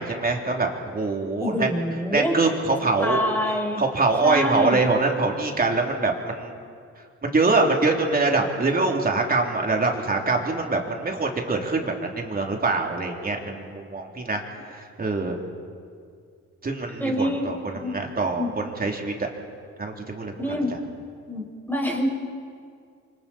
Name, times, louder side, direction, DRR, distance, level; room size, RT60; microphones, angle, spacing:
voice 1, 0.0-1.7 2.1-3.2 3.8-6.5 7.2-14.4 14.7-15.4 16.6-19.3 19.8-20.6, right 3 dB, 30° right, 1 dB, 3.3 m, -24 dB
voice 2, 1.4-2.4 3.0-3.8 4.2-4.9 17.0-18.0 18.4-18.5 20.4-20.8 21.3-22.1, left 1 dB, 5° left, 0 dB, 5.5 m, -26 dB
29.0 x 24.5 x 4.4 m, 2.3 s
cardioid pair, 90°, 30 cm